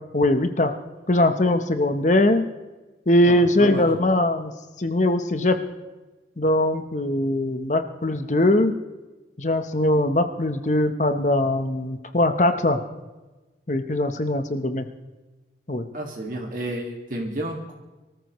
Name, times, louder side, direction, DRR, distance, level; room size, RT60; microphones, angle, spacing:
voice 1, 0.1-0.7 1.1-2.5 3.1-4.5 4.8-5.6 6.4-8.7 9.4-12.8 13.7-14.9 15.7-15.9, left 1 dB, 40° left, 8 dB, 0.9 m, -21 dB
voice 2, 3.3-3.9 15.9-17.7, right 1 dB, 50° right, 1 dB, 2.0 m, -31 dB
24.5 x 14.0 x 3.1 m, 1.2 s
head